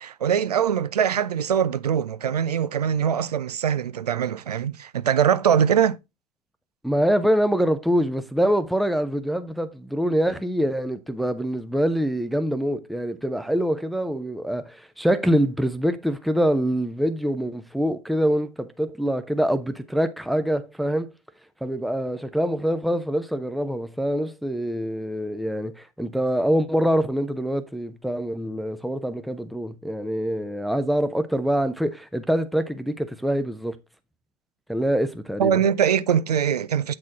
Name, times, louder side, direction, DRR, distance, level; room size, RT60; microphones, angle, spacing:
voice 1, 0.0-6.0 35.4-36.9, right 8 dB, 80° right, 0.5 m, -22 dB
voice 2, 6.8-21.1 21.6-33.8 34.7-35.6, equal, ahead, 0.6 m, -25 dB
8.6 x 4.2 x 3.9 m
figure-of-eight pair, 85°, 20 cm